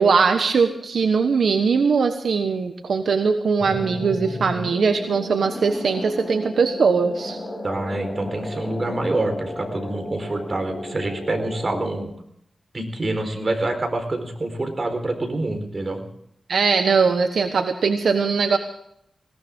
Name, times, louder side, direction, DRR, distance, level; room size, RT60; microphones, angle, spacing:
voice 1, 0.0-7.4 16.5-18.6, right 5 dB, 80° right, 7 dB, 1.2 m, -20 dB
sound 1, 3.6-12.0, left 1 dB, 20° left, 6.7 m, -33 dB
voice 2, 7.6-12.1 12.7-16.0, right 2 dB, 40° right, 5 dB, 4.3 m, -26 dB
20.5 x 18.5 x 3.7 m, 0.72 s
wide cardioid pair, 80°, 0 cm